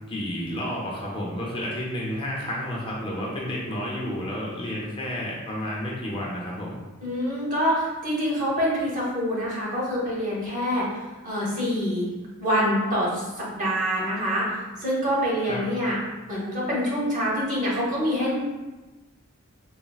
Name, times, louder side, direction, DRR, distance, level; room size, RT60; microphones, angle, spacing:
voice 1, 0.1-6.8 15.5-15.6, equal, 25° left, -4 dB, 0.4 m, -31 dB
voice 2, 7.0-12.1 12.4-18.3, equal, 40° right, -5 dB, 0.9 m, -26 dB
3.9 x 2.0 x 2.3 m, 1.1 s
head